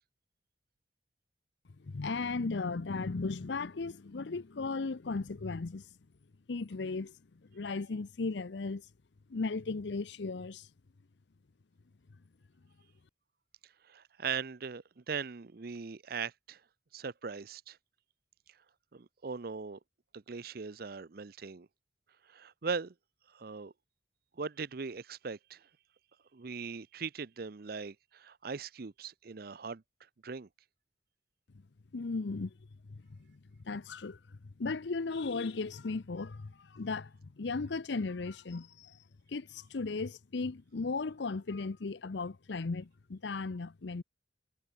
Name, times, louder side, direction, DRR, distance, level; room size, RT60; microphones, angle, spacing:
voice 1, 1.8-5.9 6.5-7.1 7.5-8.8 9.3-10.7 31.9-32.5 32.9-33.4 33.6-39.0 39.3-44.0, left 3 dB, 70° left, 0.6 m, -36 dB
voice 2, 13.8-16.6 16.9-17.8 18.9-19.8 20.1-21.7 22.3-22.9 23.3-23.7 24.4-25.6 26.3-29.8 30.2-30.5, right 5 dB, 50° right, 0.6 m, -40 dB
head